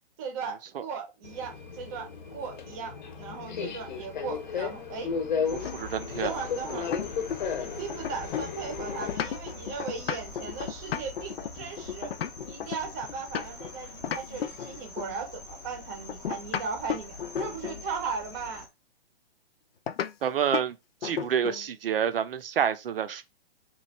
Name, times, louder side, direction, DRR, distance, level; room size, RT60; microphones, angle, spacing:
voice 1, 0.2-5.1 6.2-7.0 7.6-12.1 12.4-18.7, right 5 dB, 15° right, 0.7 m, -37 dB
Subway metro underground, 1.2-9.2, left 6 dB, 50° left, 0.8 m, -34 dB
sound 1, 5.5-18.7, left 2 dB, 20° left, 0.7 m, -44 dB
voice 2, 5.5-6.4 20.2-20.8 21.0-23.2, right 8 dB, 70° right, 0.7 m, -28 dB
sound 2, 5.6-7.6 7.9-13.7 14.0-15.2 16.1-17.9 19.9-20.1 20.5-20.7 21.0-21.7, left 8 dB, 80° left, 0.6 m, -34 dB
3.1 x 2.4 x 4.1 m
hypercardioid pair, 165°, 30 cm